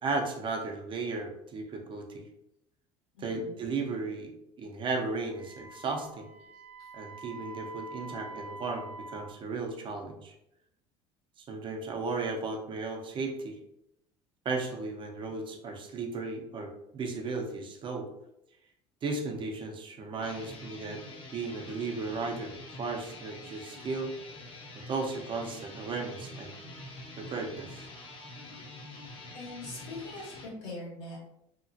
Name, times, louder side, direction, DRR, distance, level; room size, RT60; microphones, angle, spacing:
voice 1, 0.0-2.3 3.2-6.3 6.9-10.3 11.4-13.6 14.4-18.1 19.0-21.0 21.3-24.1 24.7-26.5 27.2-27.9, right 3 dB, 40° right, 2 dB, 0.6 m, -35 dB
voice 2, 3.1-3.6 29.3-31.2, left 2 dB, 85° left, -5 dB, 1.5 m, -42 dB
Wind instrument woodwind instrument, 5.3-9.3, right 2 dB, 80° right, 0.6 m, -45 dB
sound 1, 20.1-30.5, left 2 dB, 45° left, 0.7 m, -46 dB
2.9 x 2.4 x 2.6 m, 0.81 s
supercardioid pair, 95°, 13 cm